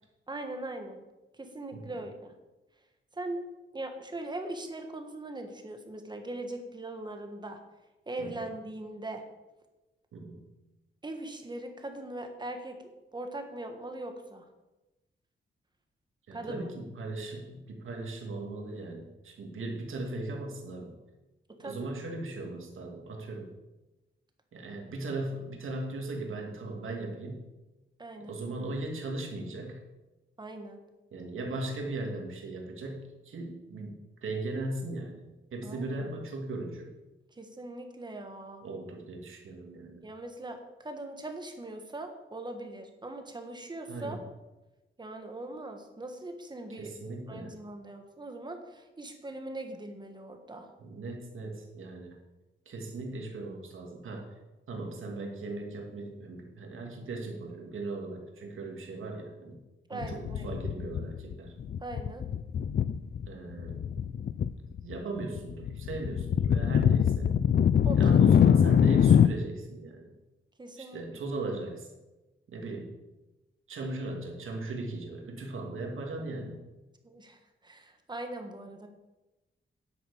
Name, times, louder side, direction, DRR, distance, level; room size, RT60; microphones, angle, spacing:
voice 1, 0.3-1.0 1.4-2.3 3.1-3.4 3.7-7.6 8.1-9.2 11.0-12.8 13.1-14.4 16.3-16.7 21.6-21.9 28.0-28.4 30.4-30.8 35.6-36.1 37.4-38.6 40.0-44.2 45.0-46.9 47.3-50.7 59.9-60.5 61.8-62.3 67.8-68.2 70.6-71.0 76.4-76.5 77.0-78.9, right 2 dB, 20° right, 5 dB, 1.5 m, -40 dB
voice 2, 10.1-10.4 16.3-20.9 21.6-23.5 24.5-27.4 28.3-29.8 31.1-36.9 38.6-40.0 43.9-44.2 46.8-47.6 50.8-52.2 52.7-54.3 54.7-59.6 59.9-61.5 63.3-63.8 64.8-67.4 68.0-70.1 70.8-71.9 72.5-72.9 73.7-76.6, right 2 dB, 80° right, 1 dB, 2.6 m, -38 dB
sound 1, 60.0-61.3 61.6-63.3 63.6-64.5 64.8-69.3, left 8 dB, 50° left, 0.4 m, -23 dB
10.0 x 8.3 x 7.1 m, 1.1 s
wide cardioid pair, 160°, 20 cm